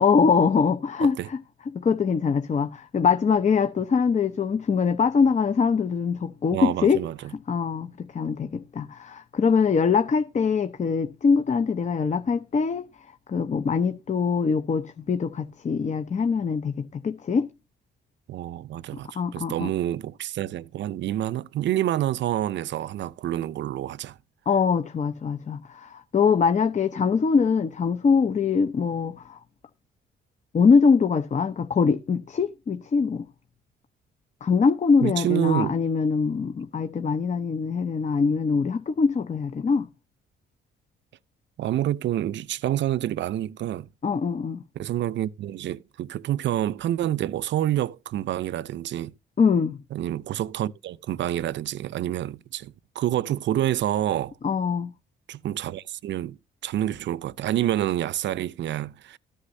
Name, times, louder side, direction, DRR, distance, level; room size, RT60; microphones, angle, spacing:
voice 1, 0.0-1.4 1.7-7.0 7.5-12.9 13.3-17.5 19.2-19.7 24.5-29.4 30.5-33.3 34.4-39.9 44.0-44.6 49.4-49.8 54.4-54.9, left 5 dB, 35° left, 0.8 m, -23 dB
voice 2, 6.5-7.3 18.3-24.2 35.0-35.8 41.6-43.9 44.8-49.1 49.9-54.3 55.3-56.4 56.6-59.2, right 12 dB, 65° right, 0.6 m, -28 dB
14.0 x 9.9 x 2.7 m
cardioid pair, 90°, 20 cm